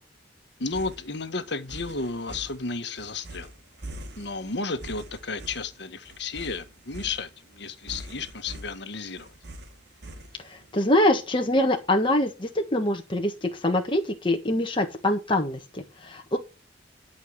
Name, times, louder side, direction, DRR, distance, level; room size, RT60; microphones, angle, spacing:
voice 1, 0.6-3.5 4.2-9.3, left 3 dB, 65° left, 1.5 m, -33 dB
sound 1, 0.7-10.7, right 1 dB, 60° right, 2.8 m, -43 dB
voice 2, 10.7-16.4, left 1 dB, 30° left, 1.5 m, -24 dB
12.0 x 5.5 x 8.0 m
head